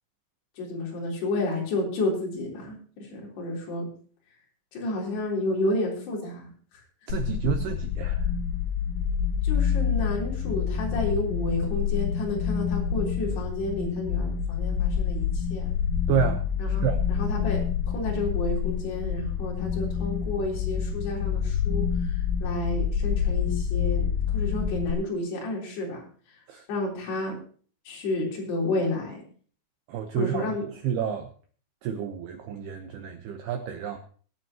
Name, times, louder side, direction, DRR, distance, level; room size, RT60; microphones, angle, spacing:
voice 1, 0.6-3.9 4.7-6.5 9.4-15.7 16.6-17.6 17.9-24.1 24.3-26.0 26.7-27.3 27.9-29.2 30.2-30.6, left 2 dB, 55° left, -3 dB, 5.6 m, -31 dB
sound 1, 7.1-24.9, left 8 dB, 80° left, 3.5 m, -27 dB
voice 2, 7.1-8.3 16.1-17.0 26.5-26.7 29.9-31.3 31.8-34.0, right 9 dB, 80° right, 5 dB, 2.3 m, -30 dB
22.5 x 9.2 x 2.9 m, 0.43 s
omnidirectional pair, 5.8 m